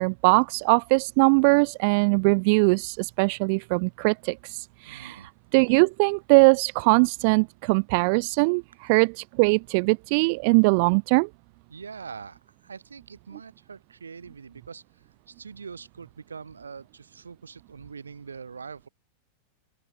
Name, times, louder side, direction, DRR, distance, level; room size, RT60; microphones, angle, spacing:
voice 1, 0.0-11.3, right 33 dB, 45° right, 0.8 m, -21 dB
voice 2, 4.8-5.3 11.7-18.9, right 5 dB, 75° right, 7.5 m, -43 dB
open air
figure-of-eight pair, 90°, 0 cm